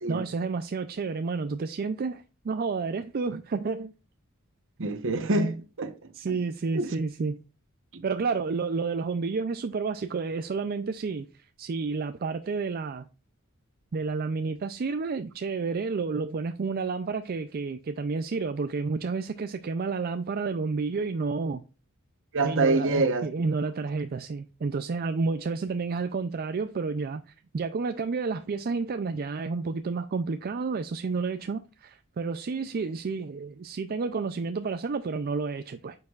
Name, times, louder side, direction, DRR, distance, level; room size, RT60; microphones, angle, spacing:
voice 1, 0.1-3.9 6.1-7.4 8.0-13.1 13.9-21.6 22.4-36.0, right 4 dB, 45° right, 0.4 m, -30 dB
voice 2, 4.8-5.9 6.3-6.4 6.7-6.9 7.9-8.0 22.3-23.3, right 2 dB, 60° right, 1.0 m, -26 dB
9.4 x 6.7 x 2.4 m
head